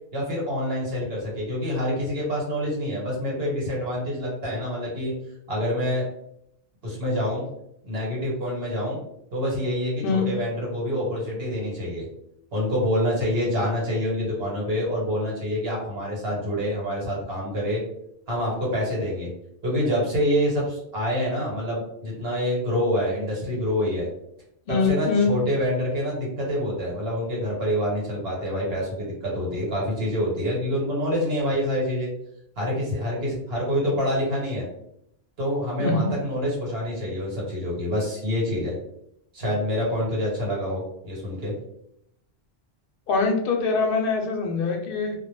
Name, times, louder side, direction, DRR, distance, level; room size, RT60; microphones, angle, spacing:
voice 1, 0.1-5.1 5.5-6.0 6.8-7.4 7.8-9.0 9.3-12.1 12.5-17.8 18.3-19.3 19.6-24.1 24.7-32.1 32.6-34.6 35.4-38.8 39.3-41.5, equal, 70° right, -4 dB, 1.1 m, -26 dB
voice 2, 24.7-25.3 35.8-36.1 43.1-45.1, left 4 dB, 65° left, 3 dB, 0.7 m, -23 dB
2.1 x 2.1 x 3.0 m, 0.76 s
omnidirectional pair, 1.1 m